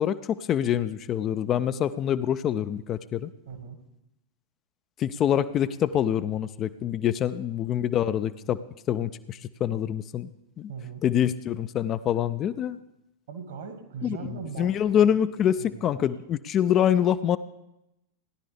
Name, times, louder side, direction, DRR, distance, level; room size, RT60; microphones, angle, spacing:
voice 1, 0.0-3.3 5.0-8.6 8.9-10.3 10.6-10.7 11.0-12.8 14.0-14.2 14.6-17.4, left 10 dB, 30° left, 13 dB, 0.4 m, -25 dB
voice 2, 3.4-3.8 7.3-7.6 10.7-11.0 13.3-15.1 15.6-16.1, right 6 dB, 60° right, 6 dB, 1.7 m, -40 dB
17.5 x 10.5 x 3.4 m, 0.86 s
figure-of-eight pair, 90°, 0 cm